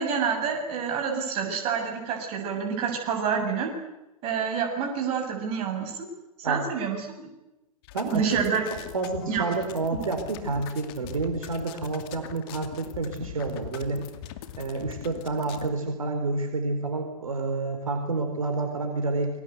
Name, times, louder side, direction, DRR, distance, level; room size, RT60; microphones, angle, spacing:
voice 1, 0.0-3.7 4.2-6.1 6.4-7.3 8.1-8.7 9.3-9.4 9.9-10.0, right 6 dB, 30° right, 3 dB, 7.3 m, -28 dB
sound 1, 7.8-15.7, left 12 dB, 40° left, 2.4 m, -42 dB
voice 2, 7.9-8.3 8.7-14.0 14.6-19.4, right 3 dB, 65° right, 5 dB, 4.4 m, -29 dB
28.0 x 22.5 x 8.2 m, 0.97 s
figure-of-eight pair, 105°, 19 cm